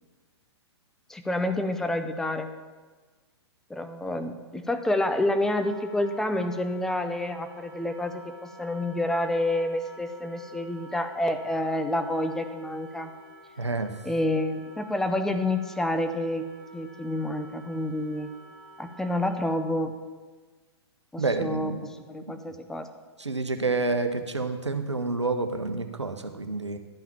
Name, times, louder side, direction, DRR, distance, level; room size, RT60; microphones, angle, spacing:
voice 1, 1.1-2.5 3.7-13.1 14.0-16.5 16.7-18.3 18.8-19.9 21.1-21.7 22.1-22.9, left 1 dB, 5° left, 8 dB, 0.6 m, -28 dB
Wind instrument woodwind instrument, 5.5-19.7, equal, 55° left, 2.9 m, -50 dB
voice 2, 13.6-13.9 21.2-21.9 22.3-22.4 23.2-26.8, right 3 dB, 85° right, 7 dB, 1.0 m, -28 dB
11.5 x 5.7 x 7.3 m, 1.4 s
figure-of-eight pair, 110°, 14 cm